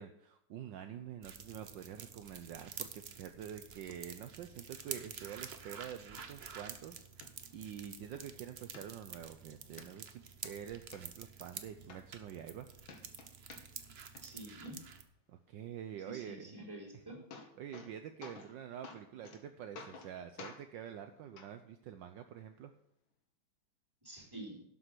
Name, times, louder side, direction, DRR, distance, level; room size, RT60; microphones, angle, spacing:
voice 1, 0.0-12.7 15.3-16.6 17.6-22.7, right 9 dB, 70° right, 7 dB, 1.4 m, -47 dB
sound 1, 1.2-15.0, right 6 dB, 50° right, 0.8 m, -49 dB
sound 2, 6.2-6.3 6.7-6.8 7.2-7.3 7.8-8.2 8.7-9.3 9.8-9.9 10.3-11.0 11.6-11.7 11.9-12.6 12.8-13.9 14.1-14.7 16.7-16.8 17.1-17.9 18.2-18.5 18.8-19.4 19.7-20.1 20.4-20.6 21.4-21.5 22.4-22.5, left 4 dB, 85° left, 2.2 m, -51 dB
voice 2, 14.2-14.8 16.1-17.2 24.0-24.6, right 1 dB, 10° right, -3 dB, 4.0 m, -48 dB
12.0 x 7.7 x 6.1 m, 0.71 s
omnidirectional pair, 2.2 m